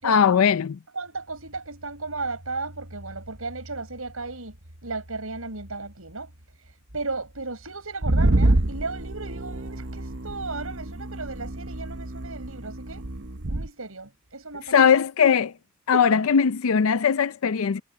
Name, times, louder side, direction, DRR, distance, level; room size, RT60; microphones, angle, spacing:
voice 1, 0.0-0.8 14.7-15.5 15.9-17.8, left 7 dB, 80° left, 0.5 m, -20 dB
voice 2, 0.9-4.6 4.8-6.3 6.9-13.0 13.5-15.0 15.9-16.4, right 3 dB, 90° right, 5.8 m, -35 dB
sound 1, 8.0-13.7, right 1 dB, 60° right, 1.1 m, -26 dB
head